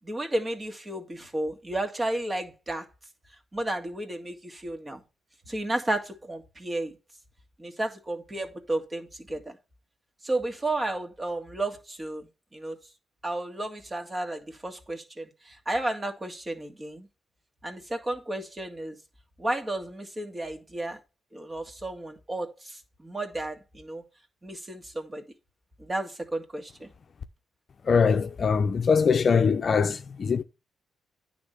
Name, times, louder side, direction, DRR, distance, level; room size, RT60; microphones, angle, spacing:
voice 1, 0.0-2.9 3.5-5.0 5.5-7.0 7.6-9.5 10.2-12.8 13.2-17.1 17.6-19.0 19.4-21.0 21.3-24.0 24.4-25.2 25.8-26.9, right 1 dB, 25° right, 1.8 m, -32 dB
voice 2, 27.8-30.4, left 5 dB, 55° left, 0.6 m, -22 dB
9.5 x 3.6 x 6.7 m
supercardioid pair, 65°, 0 cm